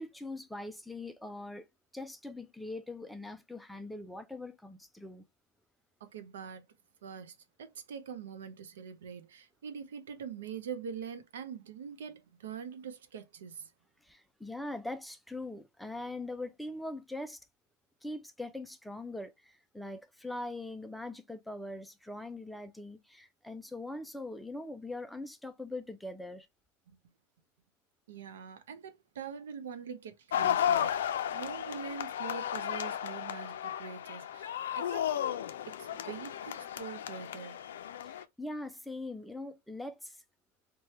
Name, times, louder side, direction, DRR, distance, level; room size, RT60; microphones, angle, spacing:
voice 1, 0.0-1.7 1.9-5.2 14.0-17.4 18.0-26.5 38.0-40.2, left 2 dB, ahead, 0.3 m, -42 dB
voice 2, 6.0-6.7 7.0-13.7 26.9-27.0 28.1-35.1 35.8-37.6, right 7 dB, 85° right, 0.6 m, -44 dB
sound 1, 30.3-38.2, left 10 dB, 85° left, 0.4 m, -34 dB
3.2 x 2.2 x 2.8 m
supercardioid pair, 145°, 0 cm